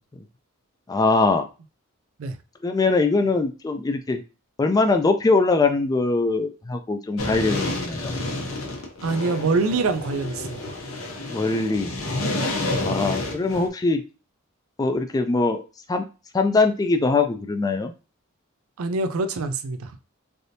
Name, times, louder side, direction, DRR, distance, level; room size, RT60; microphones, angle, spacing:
voice 1, 0.9-1.5 2.6-4.2 4.6-8.1 11.3-11.9 12.8-14.0 14.8-15.6 15.9-16.0 16.3-17.9, left 3 dB, 20° left, 0.3 m, -22 dB
sound 1, 7.2-13.7, left 2 dB, 90° left, 0.9 m, -29 dB
voice 2, 9.0-10.8 12.8-13.0 18.8-19.9, right 3 dB, 80° right, 0.4 m, -25 dB
3.4 x 2.6 x 2.7 m
head